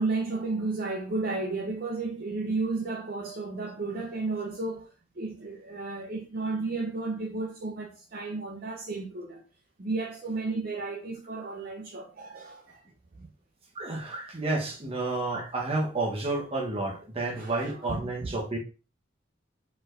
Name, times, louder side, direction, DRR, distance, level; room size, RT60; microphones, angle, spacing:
voice 1, 0.0-4.9 5.2-9.4 9.8-12.8 13.2-13.3 17.4-18.4, right 3 dB, 50° right, 0.6 m, -33 dB
voice 2, 13.8-18.6, right 2 dB, 30° right, 1.0 m, -30 dB
4.4 x 4.4 x 2.5 m
head